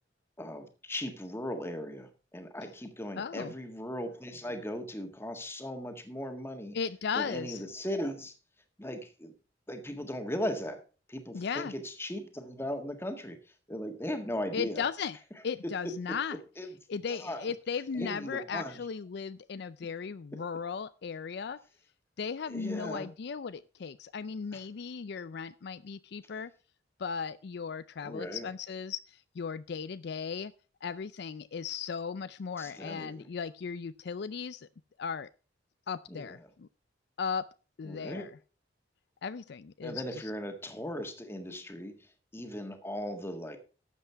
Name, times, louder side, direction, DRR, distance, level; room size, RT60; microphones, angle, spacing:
voice 1, 0.4-6.8 7.1-8.3 8.8-9.3 9.7-10.8 11.1-13.4 13.7-14.8 16.1-16.2 16.6-16.7 17.1-17.4 17.9-18.8 22.5-23.1 24.5-24.7 28.0-28.5 32.6-33.3 36.1-36.5 37.8-38.3 39.8-43.6, equal, 15° left, 6 dB, 1.7 m, -38 dB
voice 2, 3.2-3.5 6.7-7.6 11.3-11.7 14.5-15.2 15.4-16.4 16.9-21.6 22.2-26.5 27.0-30.5 30.8-34.7 35.0-35.3 35.9-36.7 37.2-37.5 37.8-38.3 39.2-40.3, left 6 dB, 60° left, 15 dB, 0.4 m, -36 dB
12.5 x 8.0 x 4.5 m, 0.34 s
head